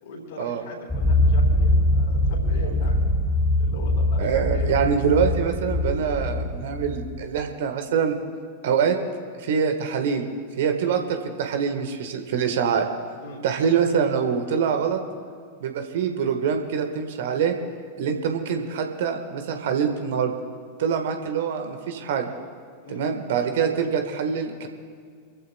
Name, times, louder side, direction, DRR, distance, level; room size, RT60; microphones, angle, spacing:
voice 1, 0.0-3.0 3.6-4.9 6.2-6.3 10.8-11.0 13.2-13.4 22.8-23.0, left 1 dB, 55° left, 0 dB, 4.0 m, -39 dB
sound 1, 0.9-7.4, left 1 dB, 10° left, 1.6 m, -22 dB
voice 2, 4.2-8.2 8.6-9.0 9.3-10.3 10.6-12.9 13.4-15.0 15.6-17.5 18.0-20.3 20.8-22.3 22.9-24.7, right 7 dB, 55° right, 6 dB, 1.4 m, -24 dB
28.5 x 14.5 x 2.3 m, 2.1 s
figure-of-eight pair, 90°, 0 cm